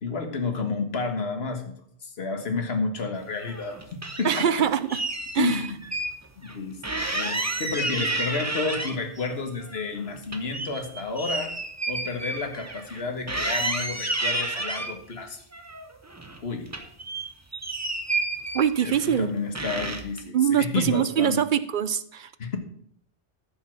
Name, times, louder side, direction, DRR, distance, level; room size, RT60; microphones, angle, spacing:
voice 1, 0.0-1.7 2.0-3.8 4.2-4.5 5.4-5.7 6.4-11.5 11.9-15.4 16.4-16.7 18.8-21.4 22.4-22.6, left 4 dB, 60° left, 6 dB, 1.8 m, -30 dB
sound 1, 3.4-4.5 4.9-6.1 6.4-6.5 6.8-9.2 9.6-13.0 13.3-14.9 15.5-16.4 16.7-19.2 19.6-20.2, right 2 dB, 15° right, 0.9 m, -31 dB
voice 2, 4.2-5.0 5.3-5.6 18.5-19.3 20.3-22.3, right 9 dB, 55° right, 14 dB, 0.6 m, -23 dB
14.0 x 5.6 x 6.0 m, 0.65 s
omnidirectional pair, 1.2 m